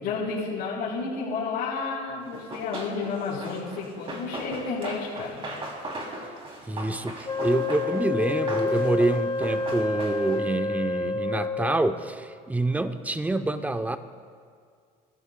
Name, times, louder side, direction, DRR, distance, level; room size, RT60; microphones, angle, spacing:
voice 1, 0.0-5.4, left 4 dB, 75° left, -10 dB, 3.6 m, -31 dB
Run, 2.3-10.5, right 2 dB, 35° right, 2.9 m, -38 dB
voice 2, 6.6-14.0, right 2 dB, 10° right, 9 dB, 0.7 m, -27 dB
Wind instrument woodwind instrument, 7.3-11.9, left 4 dB, 25° left, 0.9 m, -29 dB
24.5 x 14.5 x 2.2 m, 2.1 s
cardioid pair, 105°, 17 cm